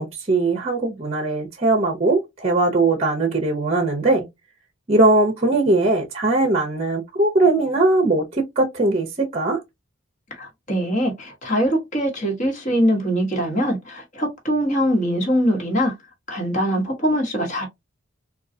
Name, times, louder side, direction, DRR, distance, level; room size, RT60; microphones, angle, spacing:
voice 1, 0.0-4.3 4.9-9.6, right 2 dB, 35° right, 0.7 m, -20 dB
voice 2, 10.3-15.9 16.3-17.7, equal, 40° left, 1.2 m, -22 dB
3.8 x 2.3 x 2.6 m
head